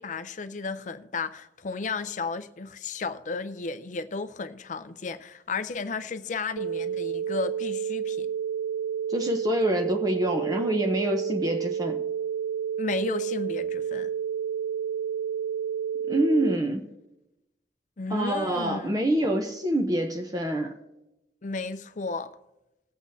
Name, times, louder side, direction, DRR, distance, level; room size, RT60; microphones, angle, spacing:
voice 1, 0.0-8.3 12.8-14.1 18.0-18.9 21.4-22.3, left 4 dB, 45° left, 0.5 m, -33 dB
sound 1, 6.6-16.6, right 8 dB, 90° right, 0.3 m, -30 dB
voice 2, 9.1-12.0 16.1-16.9 18.1-20.7, right 1 dB, 20° right, 0.7 m, -26 dB
19.5 x 8.2 x 2.7 m
head